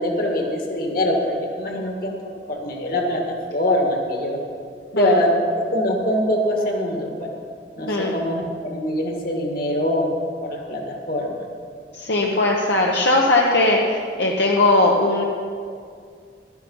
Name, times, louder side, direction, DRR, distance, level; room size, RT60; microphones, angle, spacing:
voice 1, 0.0-2.1 2.5-3.2 3.5-4.4 4.9-5.3 5.7-7.3 7.8-10.1 10.4-11.4, left 1 dB, 55° left, 1 dB, 1.9 m, -23 dB
voice 2, 11.9-15.2, left 2 dB, 75° left, -1 dB, 1.0 m, -19 dB
12.5 x 10.5 x 5.5 m, 2.2 s
head